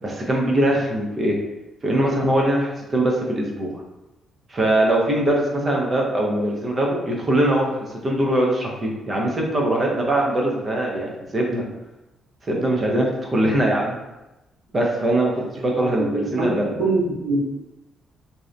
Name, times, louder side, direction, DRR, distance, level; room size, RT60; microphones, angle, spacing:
voice 1, 0.0-1.4 1.8-3.7 4.5-11.6 12.4-14.0 14.7-16.7, right 1 dB, 35° right, -1 dB, 0.6 m, -22 dB
voice 2, 16.0-16.5 16.8-17.4, right 3 dB, 85° right, -2 dB, 0.7 m, -23 dB
2.7 x 2.1 x 2.5 m, 1.0 s
cardioid pair, 90°, 0 cm